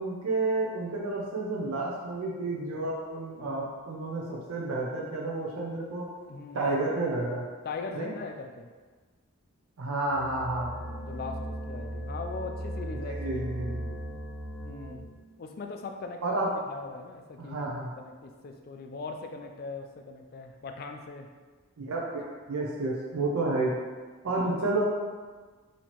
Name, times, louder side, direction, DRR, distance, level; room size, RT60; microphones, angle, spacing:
voice 1, 0.0-6.1 6.5-7.4 7.9-8.1 9.8-10.7 13.0-13.8 16.2-16.5 17.4-17.9 21.8-23.7 24.2-24.8, right 2 dB, 85° right, -3 dB, 0.6 m, -30 dB
voice 2, 6.3-6.8 7.6-8.7 10.8-13.3 14.6-15.1 15.4-16.2 16.7-21.3 24.3-24.4, left 4 dB, 45° left, 4 dB, 0.3 m, -40 dB
sound 1, 10.1-15.2, equal, 10° left, 1.2 m, -37 dB
2.9 x 2.8 x 4.2 m, 1.4 s
head